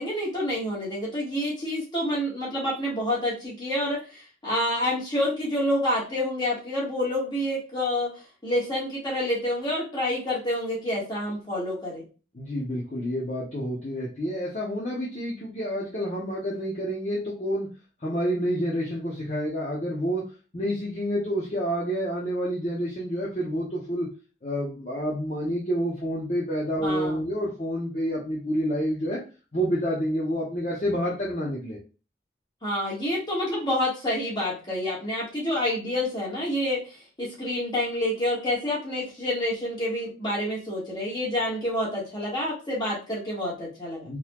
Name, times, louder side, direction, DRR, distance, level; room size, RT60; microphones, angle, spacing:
voice 1, 0.0-8.1 8.4-12.0 26.8-27.3 32.6-36.8 37.2-44.1, left 1 dB, 25° left, -6 dB, 1.6 m, -28 dB
voice 2, 12.3-17.7 18.0-20.3 20.5-24.1 24.4-29.2 29.5-31.8 44.0-44.2, equal, 40° left, -6 dB, 0.8 m, -28 dB
3.9 x 3.0 x 2.3 m, 0.34 s
head